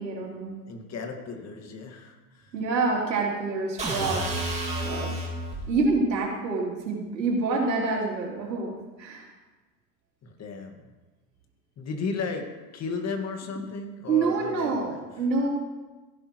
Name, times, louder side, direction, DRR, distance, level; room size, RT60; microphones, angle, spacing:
voice 1, 0.0-0.5 2.5-4.4 4.8-5.1 5.7-9.3 14.1-15.5, right 3 dB, 90° right, -3 dB, 3.5 m, -27 dB
voice 2, 0.7-2.6 5.5-5.6 10.2-10.8 11.8-15.3, left 4 dB, 30° left, 4 dB, 2.0 m, -35 dB
sound 1, 3.8-5.7, right 1 dB, 15° right, 2.3 m, -30 dB
15.5 x 11.0 x 3.2 m, 1.2 s
hypercardioid pair, 100°, 49 cm